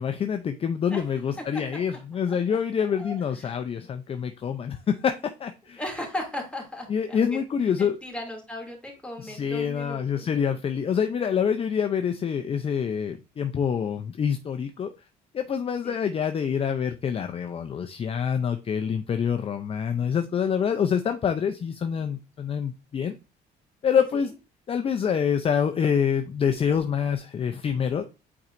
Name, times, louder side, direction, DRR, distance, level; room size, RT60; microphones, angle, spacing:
voice 1, 0.0-5.1 5.4-5.8 6.9-8.0 9.2-14.9 15.3-23.1 23.8-24.3 24.7-28.0, left 7 dB, 35° left, 7 dB, 0.6 m, -26 dB
voice 2, 2.9-3.6 5.8-7.4 7.8-10.3 15.8-16.1, left 1 dB, 5° left, 0 dB, 2.6 m, -37 dB
8.5 x 4.4 x 2.6 m, 0.30 s
cardioid pair, 110°, 17 cm